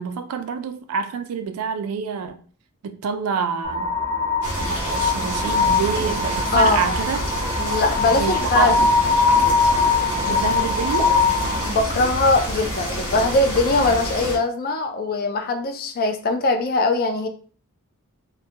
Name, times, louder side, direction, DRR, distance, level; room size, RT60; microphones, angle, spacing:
voice 1, 0.0-2.4 2.8-3.9 4.9-7.3 8.2-8.9 10.3-11.1, right 6 dB, 75° right, 0.3 m, -27 dB
sound 1, 3.6-11.7, left 4 dB, 25° right, 0.5 m, -22 dB
sound 2, 4.4-14.4, equal, 85° left, 0.9 m, -28 dB
voice 2, 6.5-6.9 7.6-8.9 11.6-17.3, left 2 dB, 45° left, 0.3 m, -21 dB
2.2 x 2.2 x 2.7 m
head